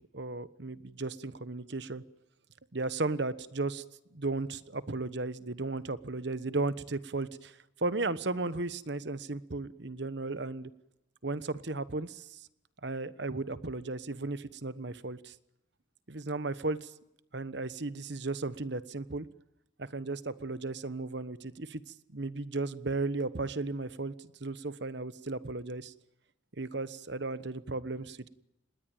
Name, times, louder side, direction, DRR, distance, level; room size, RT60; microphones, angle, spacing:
voice 1, 0.1-2.0 2.7-3.8 4.1-10.7 11.2-12.4 12.8-15.3 16.1-16.9 17.3-19.3 19.8-21.8 22.1-24.1 24.4-25.9 26.6-28.3, right 3 dB, 60° right, 15 dB, 1.2 m, -35 dB
26.5 x 20.5 x 9.1 m, 0.86 s
head